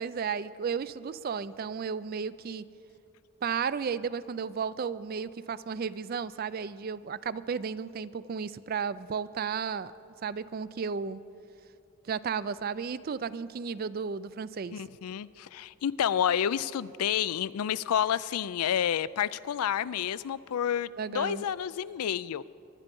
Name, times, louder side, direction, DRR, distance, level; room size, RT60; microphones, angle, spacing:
voice 1, 0.0-2.6 3.4-9.9 10.2-11.2 12.0-14.8 21.0-21.5, right 6 dB, 40° right, 17 dB, 0.3 m, -33 dB
voice 2, 14.7-22.4, left 9 dB, 80° left, 18 dB, 0.4 m, -29 dB
23.5 x 11.0 x 5.3 m, 2.8 s
head